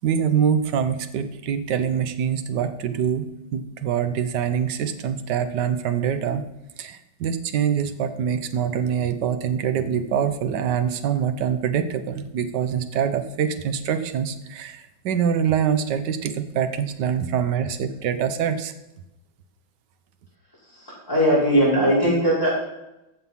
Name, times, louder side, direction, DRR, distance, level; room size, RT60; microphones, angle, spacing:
voice 1, 0.0-6.4 6.8-18.7, right 8 dB, 65° right, 9 dB, 1.5 m, -24 dB
voice 2, 20.6-22.5, equal, 10° left, -7 dB, 5.4 m, -20 dB
15.0 x 6.7 x 5.6 m, 0.92 s
omnidirectional pair, 2.1 m